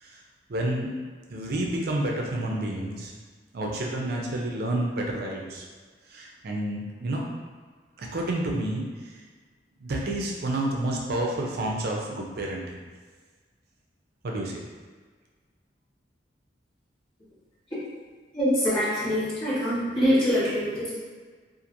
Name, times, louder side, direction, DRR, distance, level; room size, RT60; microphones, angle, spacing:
voice 1, 0.5-0.9 1.3-3.1 3.5-5.6 6.1-7.2 8.0-9.1 9.8-12.8 14.2-14.6, right 1 dB, 60° right, -1 dB, 0.5 m, -29 dB
voice 2, 18.3-21.0, equal, 30° left, -12 dB, 1.4 m, -24 dB
2.9 x 2.5 x 2.5 m, 1.5 s
head